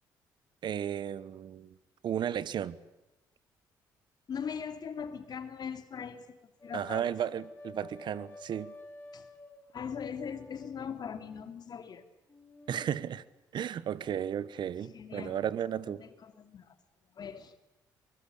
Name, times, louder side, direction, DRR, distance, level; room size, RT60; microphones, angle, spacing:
voice 1, 0.6-1.7 2.0-2.8 6.7-8.7 12.7-13.2 13.5-16.0, right 9 dB, 65° right, 18 dB, 1.2 m, -34 dB
voice 2, 4.3-7.1 9.1-9.3 9.7-12.0 14.9-15.4 15.8-16.8 17.1-17.6, left 7 dB, 55° left, 8 dB, 2.8 m, -40 dB
sound 1, 6.6-9.7 10.0-11.6 12.3-13.2, left 2 dB, 20° left, 5.5 m, -51 dB
23.5 x 22.0 x 8.5 m, 1.0 s
supercardioid pair, 65°, 9 cm